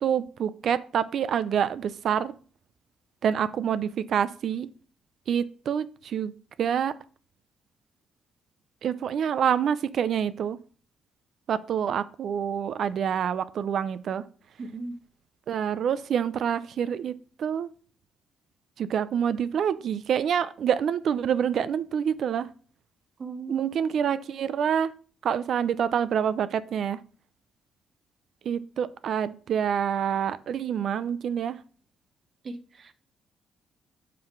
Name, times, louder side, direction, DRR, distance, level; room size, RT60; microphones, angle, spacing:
voice 1, 0.0-2.3 3.2-4.7 5.3-6.3 6.6-6.9 8.8-10.6 11.5-14.2 15.5-17.7 18.8-22.5 23.5-24.9 25.2-27.0 28.5-31.6, right 8 dB, 65° right, 0.5 m, -27 dB
voice 2, 14.6-15.0 23.2-23.8 32.4-32.9, right 3 dB, 45° right, 0.9 m, -37 dB
5.7 x 5.0 x 5.8 m
cardioid pair, 90°, 0 cm